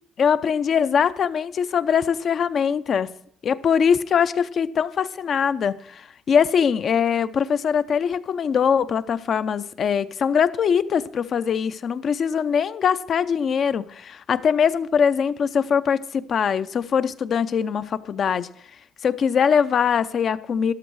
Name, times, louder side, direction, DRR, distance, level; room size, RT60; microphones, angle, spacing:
voice 1, 0.2-3.1 3.4-18.5 19.0-20.7, left 7 dB, 55° left, 0.6 m, -22 dB
13.5 x 12.0 x 4.7 m
supercardioid pair, 65°, 0 cm